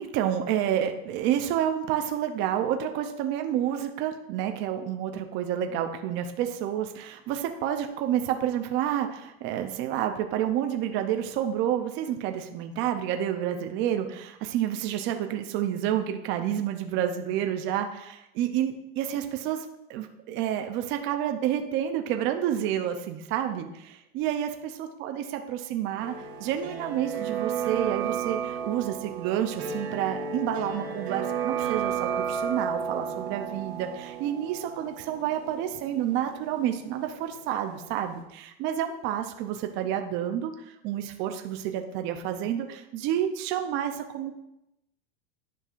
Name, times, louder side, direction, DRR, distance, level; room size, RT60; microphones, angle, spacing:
voice 1, 0.0-26.1 26.4-44.3, right 10 dB, 35° right, 5 dB, 0.5 m, -29 dB
sound 1, 26.0-37.7 38.0-38.1, right 7 dB, 85° right, 1.3 m, -33 dB
9.8 x 5.4 x 2.4 m, 0.88 s
supercardioid pair, 140°, 32 cm